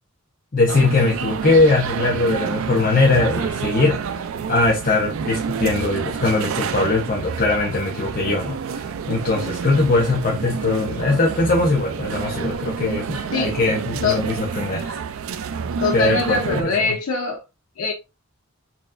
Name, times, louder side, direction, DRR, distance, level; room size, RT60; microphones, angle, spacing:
voice 1, 0.5-4.2 4.5-15.0 15.9-16.9, left 3 dB, 40° left, 0.8 m, -21 dB
sound 1, 0.7-16.6, right 6 dB, 65° right, 0.3 m, -28 dB
voice 2, 15.8-17.4 17.8-17.9, left 4 dB, 80° left, 0.6 m, -22 dB
4.1 x 3.2 x 2.4 m
head